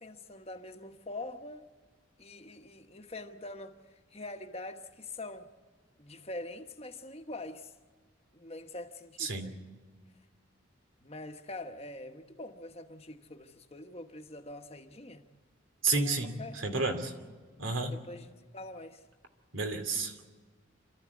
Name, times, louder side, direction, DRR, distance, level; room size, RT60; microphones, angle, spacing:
voice 1, 0.0-1.7 2.2-5.5 6.0-7.7 8.3-9.5 11.0-15.2 15.9-16.6 17.9-19.0, left 2 dB, 30° left, 1.2 m, -44 dB
voice 2, 9.2-9.5 15.8-17.1 17.6-17.9 19.5-20.3, right 3 dB, 85° right, 2.7 m, -31 dB
28.5 x 13.5 x 8.4 m
head